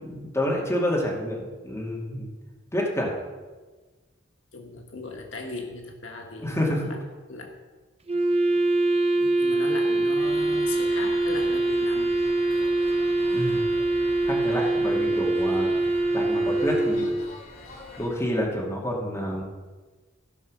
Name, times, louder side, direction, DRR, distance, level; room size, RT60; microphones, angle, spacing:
voice 1, 0.0-2.3 2.7-3.1 6.4-6.8 13.3-13.6 14.3-15.7 16.1-17.2 18.0-19.4, equal, 15° left, -3 dB, 2.4 m, -28 dB
voice 2, 4.5-7.0 7.3-7.6 9.2-12.2, left 3 dB, 80° left, 2 dB, 1.6 m, -38 dB
Wind instrument woodwind instrument, 8.1-17.3, right 2 dB, 30° right, 0.8 m, -24 dB
sound 1, 10.2-18.1, left 3 dB, 50° left, 3.3 m, -43 dB
16.0 x 5.5 x 6.4 m, 1.3 s
head